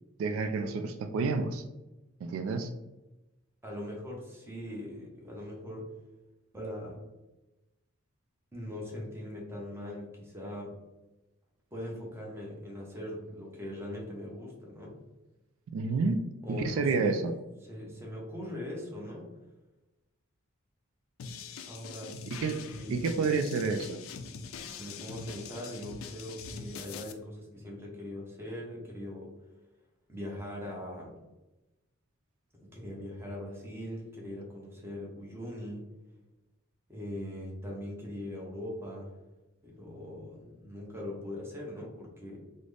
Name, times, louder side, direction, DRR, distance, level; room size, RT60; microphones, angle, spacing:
voice 1, 0.2-1.6 2.2-2.7 15.7-16.2 16.5-17.3 22.3-22.6 22.9-24.0, right 4 dB, 70° right, 8 dB, 0.3 m, -29 dB
voice 2, 3.6-5.9 6.5-7.0 8.5-10.8 11.7-15.0 16.4-17.3 17.6-19.3 21.7-22.2 22.7-23.3 24.7-29.4 30.1-31.2 32.6-35.9 36.9-39.1 39.6-42.4, left 1 dB, 10° right, -2 dB, 0.8 m, -41 dB
sound 1, 21.2-27.1, left 5 dB, 70° left, 0.4 m, -43 dB
3.8 x 2.1 x 3.2 m, 1.0 s
head